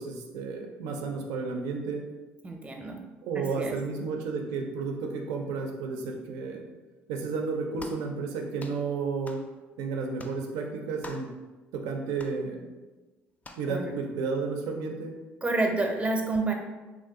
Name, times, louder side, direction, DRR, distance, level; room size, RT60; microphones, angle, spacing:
voice 1, 0.0-2.0 3.2-6.6 7.1-9.4 9.8-11.3 11.7-12.6 13.6-15.1, right 4 dB, 85° right, 3 dB, 0.4 m, -32 dB
voice 2, 2.4-3.0 3.4-3.8 13.7-13.8 15.4-16.5, right 2 dB, 20° right, 3 dB, 0.6 m, -28 dB
sound 1, 7.8-8.1 8.6-8.8 9.3-9.5 10.2-10.4 11.0-11.3 12.2-12.4 13.4-13.7, left 2 dB, 25° left, 0.4 m, -44 dB
2.6 x 2.3 x 3.5 m, 1.2 s
supercardioid pair, 75°, 6 cm